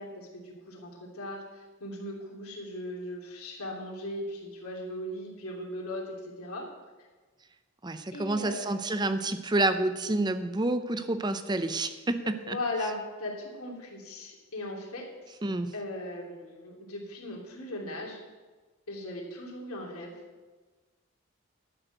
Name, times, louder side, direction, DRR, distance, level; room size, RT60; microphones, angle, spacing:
voice 1, 0.0-6.7 8.1-8.7 12.2-15.1 15.7-18.2 18.9-20.1, left 1 dB, 90° left, -1 dB, 3.0 m, -38 dB
voice 2, 7.8-12.6 15.4-15.7, right 2 dB, 20° right, 10 dB, 0.6 m, -29 dB
12.0 x 6.4 x 7.9 m, 1.3 s
head